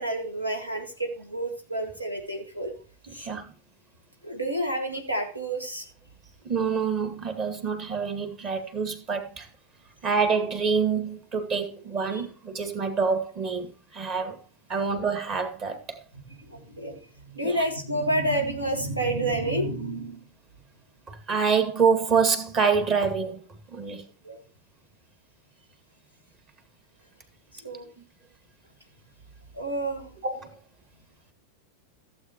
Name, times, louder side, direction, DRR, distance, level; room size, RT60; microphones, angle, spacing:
voice 1, 0.0-2.7 3.1-3.3 4.2-5.9 12.1-12.2 16.5-20.2 24.2-24.4 27.6-27.9 29.5-30.2, right 1 dB, 85° right, 2.0 m, -29 dB
voice 2, 3.1-3.5 6.4-9.5 10.0-14.4 14.7-16.0 17.4-17.6 21.1-23.4 23.7-24.1 30.2-30.6, right 5 dB, 30° right, 2.1 m, -26 dB
16.0 x 7.8 x 3.0 m
figure-of-eight pair, 90°, 0 cm